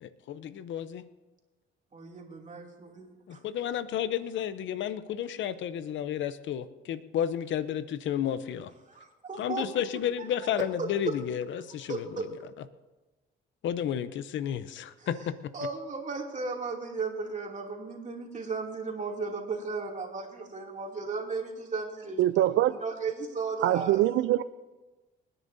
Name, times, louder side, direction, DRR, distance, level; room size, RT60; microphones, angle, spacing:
voice 1, 0.0-1.0 3.3-8.7 9.4-12.3 13.6-15.3, left 9 dB, 75° left, 0.7 m, -32 dB
voice 2, 1.9-3.4 8.9-9.8 10.2-11.2 11.9-12.3 15.0-15.3 15.5-24.0, right 4 dB, 40° right, 2.7 m, -36 dB
voice 3, 22.2-22.7 23.6-24.4, right 14 dB, 80° right, 0.4 m, -23 dB
27.0 x 10.0 x 2.7 m
cardioid pair, 90°, 20 cm